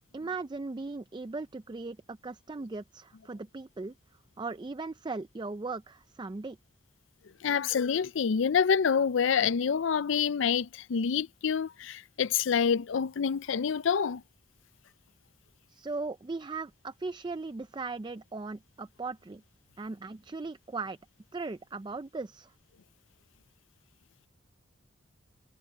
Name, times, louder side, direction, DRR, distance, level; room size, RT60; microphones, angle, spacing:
voice 1, 0.1-3.9 4.4-6.6 15.7-19.4 19.8-21.0 21.3-22.5, right 3 dB, 25° right, 0.4 m, -38 dB
voice 2, 7.4-14.2, left 6 dB, 75° left, 0.5 m, -27 dB
head